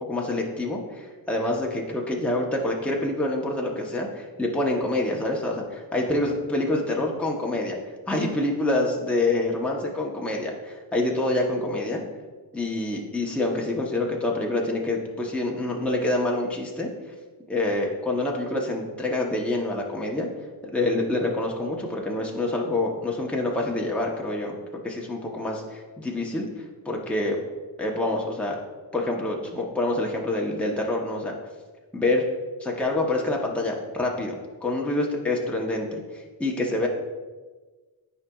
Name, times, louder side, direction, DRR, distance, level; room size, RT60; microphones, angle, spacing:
voice 1, 0.1-7.8 8.1-12.0 12.5-16.9 17.5-20.3 20.7-24.6 24.8-26.5 26.8-27.4 27.8-28.6 28.9-31.3 31.9-32.2 32.6-34.3 34.6-36.9, left 2 dB, 5° left, -1 dB, 0.9 m, -26 dB
9.6 x 4.9 x 2.4 m, 1.3 s
cardioid pair, 75°, 48 cm